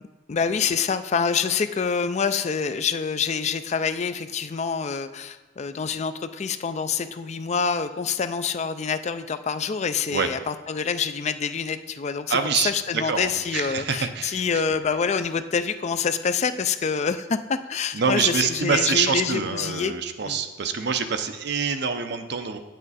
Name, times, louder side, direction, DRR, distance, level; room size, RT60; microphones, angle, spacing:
voice 1, 0.3-19.9 20.3-20.4, left 6 dB, 35° left, 11 dB, 0.4 m, -26 dB
voice 2, 12.3-14.6 17.9-22.6, right 6 dB, 60° right, 8 dB, 0.6 m, -26 dB
8.9 x 7.4 x 4.1 m, 1.2 s
head